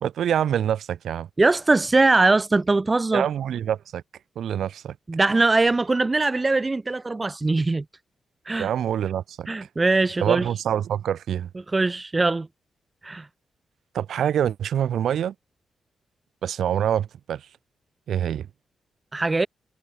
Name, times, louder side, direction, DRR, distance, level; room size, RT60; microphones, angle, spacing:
voice 1, 0.0-1.3 3.1-4.0 4.4-5.0 8.6-9.7 10.2-11.5 13.9-15.3 16.4-17.5 18.1-18.5, right 9 dB, 80° right, 2.4 m, -25 dB
voice 2, 1.4-3.3 5.1-7.8 8.5-8.7 9.5-10.5 11.7-12.5 13.0-13.3 19.1-19.5, right 3 dB, 25° right, 0.4 m, -21 dB
cardioid pair, 85°, 0 cm